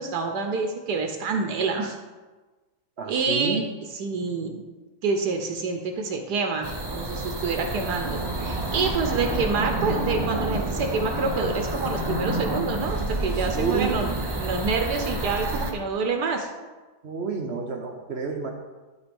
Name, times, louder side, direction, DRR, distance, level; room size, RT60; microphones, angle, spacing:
voice 1, 0.0-2.0 3.1-3.6 3.9-4.6 5.0-16.5, right 4 dB, 75° right, 4 dB, 1.4 m, -27 dB
voice 2, 3.0-3.6 13.5-14.3 17.0-18.5, right 4 dB, 50° right, 2 dB, 0.8 m, -29 dB
sound 1, 6.6-15.7, right 1 dB, 30° right, 0.4 m, -29 dB
12.0 x 4.1 x 5.3 m, 1.2 s
omnidirectional pair, 1.8 m